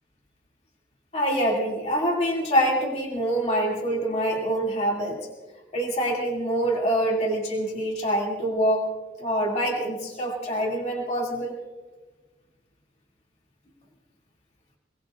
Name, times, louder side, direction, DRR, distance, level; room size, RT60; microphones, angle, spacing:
voice 1, 1.1-5.2 5.7-8.9 9.2-11.5, equal, 35° left, -2 dB, 2.6 m, -25 dB
27.5 x 19.0 x 2.5 m, 1.2 s
head